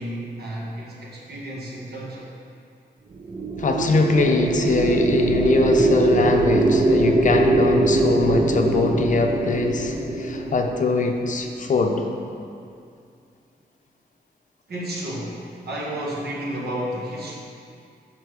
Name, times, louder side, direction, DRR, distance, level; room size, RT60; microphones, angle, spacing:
voice 1, 0.0-2.3 14.7-17.3, right 1 dB, 70° right, -4 dB, 1.6 m, -32 dB
sound 1, 3.1-11.6, right 2 dB, 30° right, 0.6 m, -22 dB
voice 2, 3.6-12.1, left 3 dB, 50° left, 3 dB, 0.6 m, -22 dB
6.7 x 5.8 x 4.7 m, 2.4 s
wide cardioid pair, 150°, 17 cm